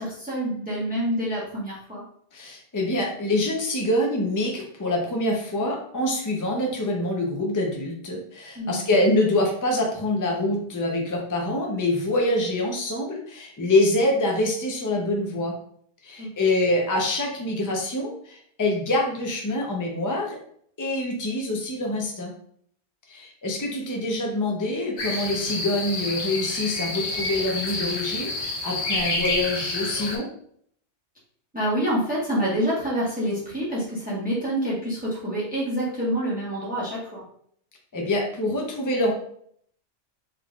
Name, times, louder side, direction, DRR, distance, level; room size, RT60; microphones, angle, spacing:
voice 1, 0.0-2.0 8.5-8.8 16.2-16.3 31.5-37.2, equal, 10° right, -6 dB, 1.0 m, -27 dB
voice 2, 2.3-15.6 16.0-20.4 20.8-22.3 23.1-30.3 37.9-39.1, left 1 dB, 20° left, 0 dB, 0.5 m, -25 dB
sound 1, 25.0-30.2, left 2 dB, 70° left, 1.0 m, -29 dB
3.6 x 3.2 x 2.4 m, 0.63 s
omnidirectional pair, 1.2 m